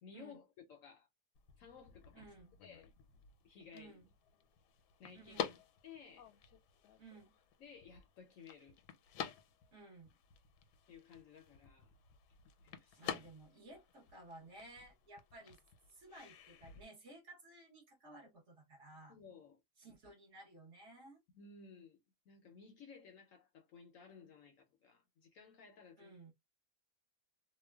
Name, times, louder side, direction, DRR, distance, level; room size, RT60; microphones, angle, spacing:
voice 1, 0.0-1.1 1.6-2.3 2.6-2.9 3.4-4.0 5.0-5.4 5.8-6.3 7.6-8.8 10.9-11.9 12.6-13.3 19.1-19.6 21.3-22.0 22.3-26.1, left 6 dB, 70° left, 0.8 m, -57 dB
sound 1, 1.3-16.8, left 9 dB, 85° left, 1.2 m, -50 dB
voice 2, 2.1-2.6 3.7-4.1 5.1-5.6 7.0-7.3 9.7-10.1 13.0-15.6 15.9-19.2 19.8-21.2 26.0-26.3, right 2 dB, 50° right, 1.2 m, -56 dB
2.9 x 2.1 x 2.2 m
omnidirectional pair, 1.7 m